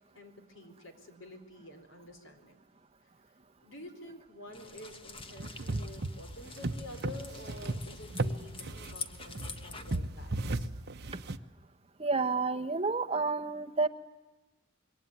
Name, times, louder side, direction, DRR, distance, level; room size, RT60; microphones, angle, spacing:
voice 1, 0.1-2.6 3.6-10.7, left 2 dB, 80° left, 7 dB, 4.5 m, -49 dB
sound 1, 4.5-10.0, left 4 dB, 25° left, 1.3 m, -46 dB
sound 2, 5.4-11.4, right 2 dB, 55° right, 1.0 m, -36 dB
voice 2, 12.0-13.9, right 4 dB, 30° right, 8 dB, 1.0 m, -30 dB
26.5 x 22.5 x 9.9 m, 1.1 s
head